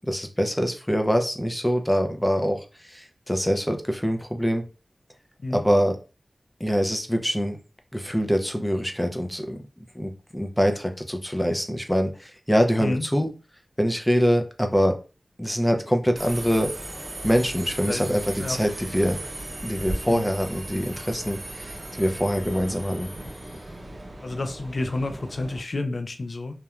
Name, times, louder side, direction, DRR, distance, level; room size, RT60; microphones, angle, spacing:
voice 1, 0.1-4.7 5.5-6.0 6.6-7.6 7.9-13.3 13.8-15.0 15.4-16.7 17.2-19.2 19.6-23.1, equal, 10° left, 4 dB, 0.4 m, -24 dB
Subway metro underground, 16.2-25.6, right 1 dB, 50° right, 0.7 m, -37 dB
voice 2, 17.8-18.6 20.1-20.3 24.2-26.6, left 2 dB, 65° left, 8 dB, 0.4 m, -30 dB
2.9 x 2.1 x 2.4 m, 0.33 s
wide cardioid pair, 65°, 0 cm